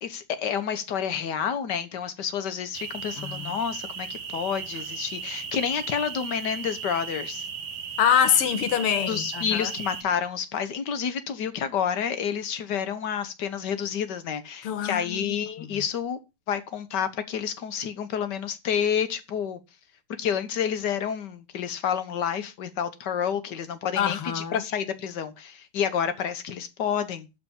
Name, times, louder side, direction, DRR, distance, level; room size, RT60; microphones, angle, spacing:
voice 1, 0.0-7.5 9.1-16.2 16.5-19.6 20.2-27.3, left 8 dB, 55° left, 1.7 m, -29 dB
sound 1, 2.7-10.0, right 6 dB, 55° right, 1.7 m, -36 dB
voice 2, 3.2-3.6 8.0-9.7 14.6-15.8 24.0-24.6, left 8 dB, 90° left, 2.1 m, -25 dB
12.5 x 4.2 x 7.2 m
omnidirectional pair, 2.4 m